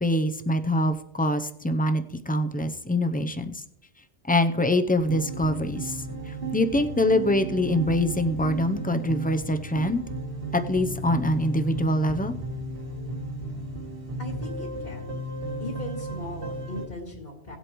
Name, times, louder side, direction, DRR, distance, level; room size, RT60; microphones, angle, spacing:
voice 1, 0.0-3.6 4.3-10.0 10.5-12.4, left 1 dB, 10° left, 8 dB, 0.5 m, -24 dB
sound 1, 5.0-16.9, right 2 dB, 60° right, 2.1 m, -34 dB
voice 2, 14.2-15.2 15.6-17.6, left 2 dB, 60° left, -3 dB, 2.5 m, -38 dB
18.0 x 8.1 x 3.1 m, 0.77 s
omnidirectional pair, 1.1 m